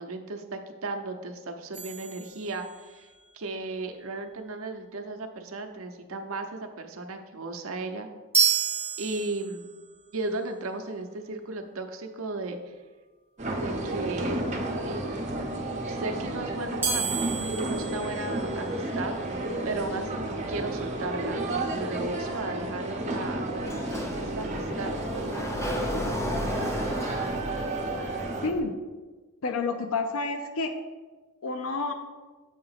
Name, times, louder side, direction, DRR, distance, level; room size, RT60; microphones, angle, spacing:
voice 1, 0.0-3.1 3.3-8.1 9.0-9.7 10.1-12.7 13.6-14.5 14.8-15.0 15.9-19.1 19.6-23.5 24.1-24.9, right 2 dB, 70° right, 5 dB, 0.7 m, -35 dB
sound 1, 1.7-3.0 8.3-9.8 16.8-19.0, right 6 dB, 10° right, 1.1 m, -30 dB
sound 2, 13.4-28.5, right 2 dB, 35° right, 0.9 m, -32 dB
Sliding door, 23.6-28.6, equal, 15° left, 0.8 m, -34 dB
voice 2, 28.4-28.7 29.4-30.7 31.4-31.9, left 3 dB, 70° left, 6 dB, 0.5 m, -29 dB
8.0 x 2.9 x 5.7 m, 1.3 s
head